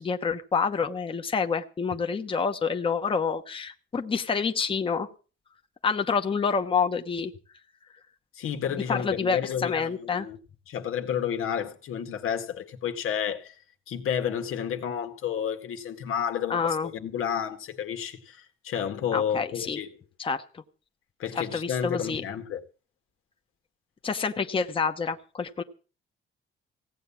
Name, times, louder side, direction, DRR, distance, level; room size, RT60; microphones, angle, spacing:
voice 1, 0.0-5.1 5.8-7.3 8.7-10.3 16.5-16.9 19.1-19.8 20.2-20.6 21.3-22.2 24.0-25.6, left 5 dB, 25° left, 1.0 m, -28 dB
voice 2, 8.4-10.4 10.7-13.6 13.9-19.9 21.2-22.6, left 8 dB, 90° left, 1.9 m, -31 dB
17.0 x 9.0 x 7.1 m
cardioid pair, 155°, 21 cm